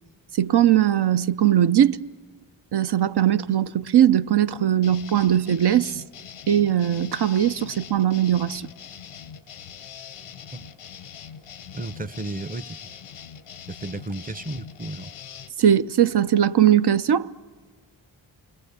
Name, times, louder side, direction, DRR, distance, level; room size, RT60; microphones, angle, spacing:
voice 1, 0.3-2.0 2.7-6.0 6.5-8.7 15.6-17.3, right 10 dB, 55° right, 0.6 m, -20 dB
sound 1, 4.8-15.5, left 8 dB, 85° left, 0.9 m, -42 dB
voice 2, 11.7-12.8 13.7-15.1, right 2 dB, 20° right, 0.7 m, -33 dB
29.0 x 22.0 x 6.8 m
cardioid pair, 40°, 48 cm